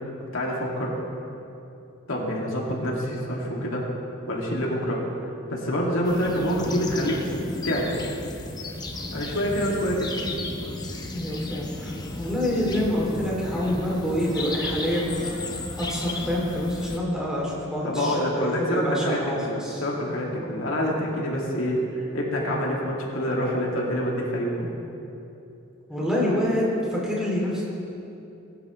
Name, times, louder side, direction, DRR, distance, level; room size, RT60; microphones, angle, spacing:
voice 1, 0.3-0.9 2.1-3.9 4.3-5.0 5.5-7.2 7.6-8.0 9.1-10.1 17.8-24.7, equal, 85° left, -3 dB, 2.2 m, -26 dB
sound 1, 6.0-17.0, left 2 dB, 20° left, 0.8 m, -34 dB
voice 2, 11.1-15.1 15.8-19.8 25.9-27.6, equal, 5° right, -5 dB, 2.6 m, -27 dB
20.0 x 9.4 x 3.1 m, 2.9 s
head